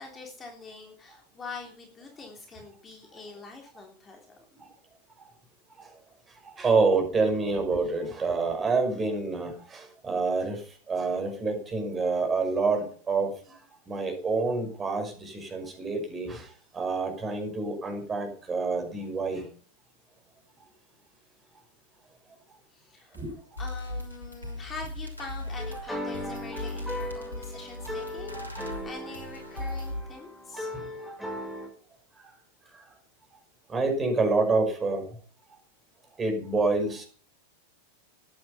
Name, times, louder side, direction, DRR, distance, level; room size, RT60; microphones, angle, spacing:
voice 1, 0.0-4.4 22.7-23.2 23.6-30.7, left 4 dB, 20° left, 1 dB, 3.5 m, -44 dB
voice 2, 6.4-10.6 10.9-13.3 13.9-16.5 16.7-19.4 23.1-23.3 30.7-30.9 33.7-35.1 36.2-37.0, right 3 dB, 20° right, 4 dB, 6.2 m, -27 dB
sound 1, 23.1-23.2 23.6-30.0, left 1 dB, 85° left, 3.2 m, -37 dB
sound 2, 25.6-31.7, left 1 dB, 5° left, 5.7 m, -38 dB
14.5 x 11.0 x 5.7 m, 0.42 s
figure-of-eight pair, 90°, 0 cm